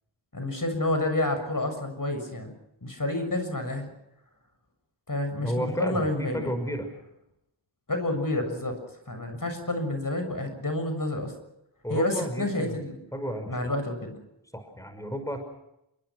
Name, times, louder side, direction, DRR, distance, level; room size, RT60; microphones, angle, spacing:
voice 1, 0.3-2.5 2.8-3.9 5.1-6.5 7.9-8.8 9.1-11.3 11.9-13.0 13.5-14.2, left 1 dB, 45° left, 6 dB, 7.1 m, -29 dB
voice 2, 5.4-6.9 11.8-12.8 13.1-13.7 14.5-15.4, equal, 5° left, 7 dB, 5.7 m, -32 dB
28.0 x 22.0 x 6.2 m, 0.83 s
cardioid pair, 45°, 46 cm